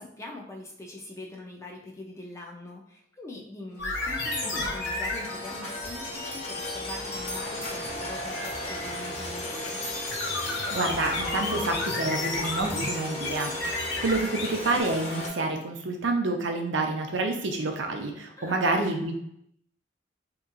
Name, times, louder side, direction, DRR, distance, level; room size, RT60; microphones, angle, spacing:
voice 1, 0.0-9.8 18.4-18.8, left 2 dB, 15° left, 0 dB, 0.4 m, -42 dB
sound 1, 3.8-5.3 10.1-14.8, left 2 dB, 70° left, 0.7 m, -31 dB
sound 2, 3.8-15.3, left 1 dB, 35° left, 0.8 m, -35 dB
voice 2, 10.7-13.5 14.0-19.1, right 2 dB, 70° right, 3 dB, 0.5 m, -28 dB
3.4 x 2.9 x 2.4 m, 0.75 s
head